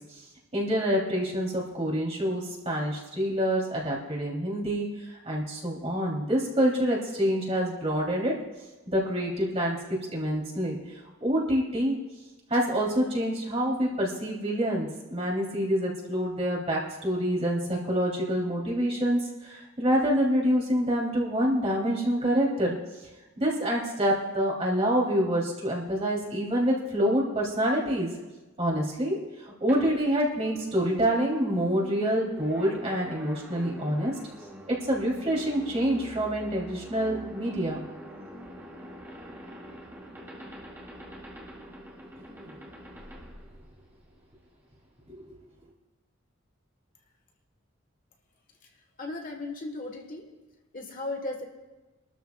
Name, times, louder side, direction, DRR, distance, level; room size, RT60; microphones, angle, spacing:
voice 1, 0.5-8.3 8.9-9.8 10.1-10.8 11.2-11.9 12.5-22.8 23.4-28.1 28.6-29.2 29.4-34.1 34.7-37.8 42.2-42.5 45.1-45.2, equal, 30° right, -3 dB, 3.3 m, -27 dB
sound 1, 29.7-44.2, equal, 10° right, 2.1 m, -45 dB
voice 2, 49.0-50.3 50.7-51.4, left 2 dB, 45° left, 3 dB, 1.4 m, -36 dB
25.5 x 13.0 x 2.4 m, 1.1 s
head